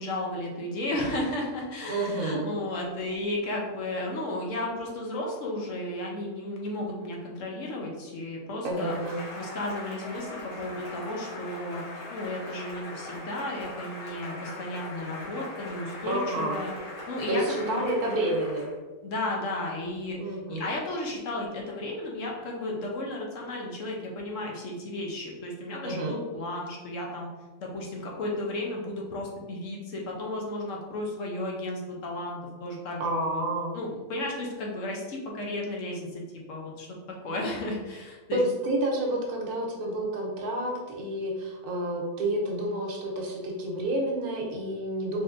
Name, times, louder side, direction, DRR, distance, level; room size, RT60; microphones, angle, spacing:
voice 1, 0.0-8.9 9.3-11.8 12.1-16.7 17.1-17.8 19.0-27.3 27.6-33.4 33.7-36.2 36.5-36.9 37.2-38.4, left 1 dB, 65° left, -1 dB, 1.0 m, -34 dB
voice 2, 1.9-2.5 8.6-9.2 16.1-16.6 17.3-18.7 20.2-20.7 25.8-26.1 33.0-33.7 38.3-45.2, right 1 dB, 85° right, -1 dB, 1.3 m, -29 dB
Cheering / Applause, 8.7-18.8, left 1 dB, 80° left, 1.6 m, -41 dB
4.1 x 3.2 x 2.5 m, 1.3 s
omnidirectional pair, 1.6 m